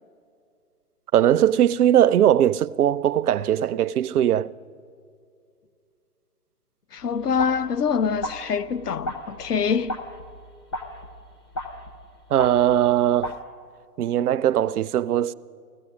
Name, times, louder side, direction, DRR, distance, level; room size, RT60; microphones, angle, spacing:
voice 1, 1.1-4.5 12.3-13.3 14.0-15.3, right 11 dB, 75° right, 0.5 m, -20 dB
voice 2, 6.9-10.0, left 6 dB, 90° left, 0.7 m, -25 dB
sound 1, 7.1-13.4, left 1 dB, 15° left, 0.5 m, -36 dB
16.0 x 14.0 x 6.2 m
hypercardioid pair, 140°, 46 cm